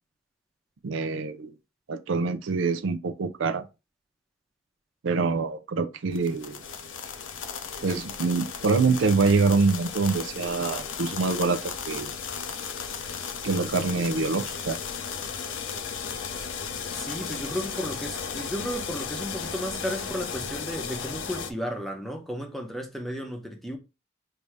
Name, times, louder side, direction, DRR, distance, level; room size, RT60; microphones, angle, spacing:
voice 1, 0.8-1.5 1.9-3.6 5.0-6.6 7.8-12.1 13.4-14.8, right 4 dB, 75° right, 0.5 m, -25 dB
sound 1, 6.1-21.5, left 6 dB, 75° left, 0.6 m, -35 dB
voice 2, 16.9-23.8, equal, ahead, 0.7 m, -34 dB
3.4 x 2.7 x 4.6 m
head